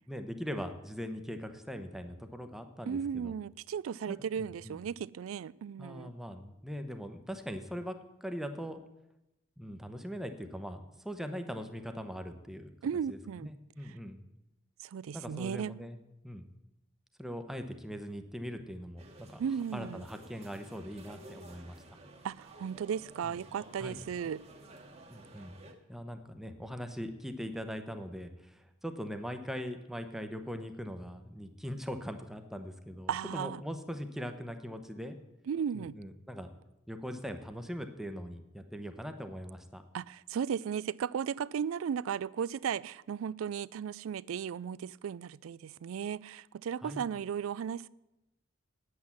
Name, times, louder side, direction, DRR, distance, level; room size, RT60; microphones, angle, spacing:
voice 1, 0.1-3.3 4.1-4.8 5.8-8.8 9.6-12.7 13.1-14.2 15.1-16.0 16.2-16.5 17.2-19.4 19.7-22.0 23.2-23.3 23.8-24.0 25.1-25.6 25.9-35.2 35.7-36.5 36.9-39.8 46.8-47.0, equal, ahead, 0.9 m, -41 dB
voice 2, 2.9-6.1 12.8-13.5 13.8-13.9 14.8-15.7 19.4-20.0 22.2-24.4 33.1-33.6 35.5-36.0 39.9-47.9, right 7 dB, 80° right, 0.3 m, -35 dB
sound 1, 19.0-25.7, right 2 dB, 30° right, 1.2 m, -53 dB
9.3 x 8.4 x 7.3 m
head